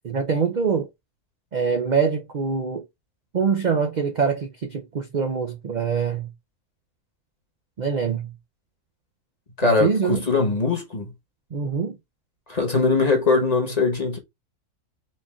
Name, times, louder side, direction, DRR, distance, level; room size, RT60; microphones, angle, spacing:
voice 1, 0.0-0.9 1.5-2.8 3.3-6.3 7.8-8.3 9.6-10.2 11.5-12.0, right 6 dB, 65° right, 0.4 m, -24 dB
voice 2, 9.6-11.1 12.5-14.2, left 4 dB, 30° left, 1.0 m, -21 dB
4.3 x 2.5 x 3.5 m
omnidirectional pair, 1.6 m